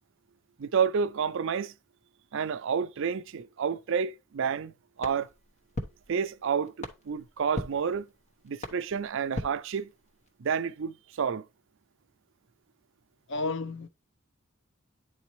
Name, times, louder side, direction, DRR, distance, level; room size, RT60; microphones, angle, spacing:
voice 1, 0.6-1.7 2.3-5.3 6.1-8.1 8.4-9.9 10.4-11.5, right 6 dB, 65° right, 0.5 m, -30 dB
sound 1, 5.0-10.3, left 1 dB, 35° left, 1.0 m, -41 dB
voice 2, 13.3-13.9, left 3 dB, 60° left, 0.5 m, -31 dB
10.0 x 4.0 x 3.1 m
head